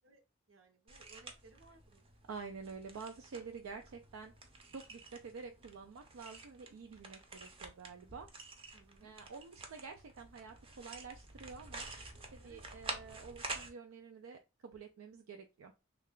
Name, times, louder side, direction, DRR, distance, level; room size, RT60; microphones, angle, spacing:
voice 1, 0.5-2.1 8.7-9.1 12.4-12.6, right 3 dB, 70° right, 5 dB, 0.8 m, -62 dB
sound 1, 0.9-13.7, right 3 dB, 25° right, 0.5 m, -49 dB
voice 2, 2.3-4.3 4.7-8.3 9.0-11.9 12.3-15.7, right 5 dB, 85° right, 5 dB, 0.4 m, -49 dB
3.2 x 2.3 x 3.6 m, 0.27 s
head